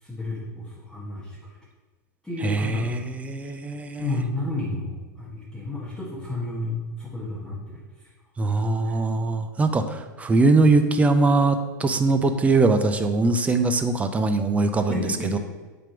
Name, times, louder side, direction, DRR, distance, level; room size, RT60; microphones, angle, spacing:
voice 1, 0.0-1.4 2.2-2.9 3.4-3.5 4.0-7.8 14.9-15.4, left 2 dB, 5° left, -7 dB, 1.6 m, -31 dB
voice 2, 2.4-4.1 8.4-14.9 15.3-15.4, right 3 dB, 15° right, 7 dB, 0.5 m, -21 dB
7.3 x 3.4 x 5.8 m, 1.3 s
hypercardioid pair, 120°, 10 cm